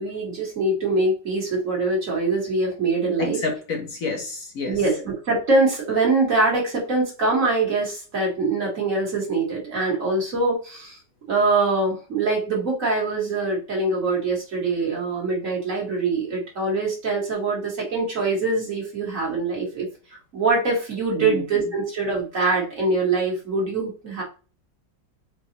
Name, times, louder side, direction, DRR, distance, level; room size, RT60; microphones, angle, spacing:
voice 1, 0.0-3.4 4.7-11.0 11.3-19.9 20.3-24.2, right 3 dB, 45° right, -3 dB, 1.8 m, -23 dB
voice 2, 3.2-4.8 21.1-21.7, left 3 dB, 60° left, 2 dB, 1.0 m, -29 dB
4.7 x 2.3 x 2.8 m, 0.35 s
omnidirectional pair, 2.0 m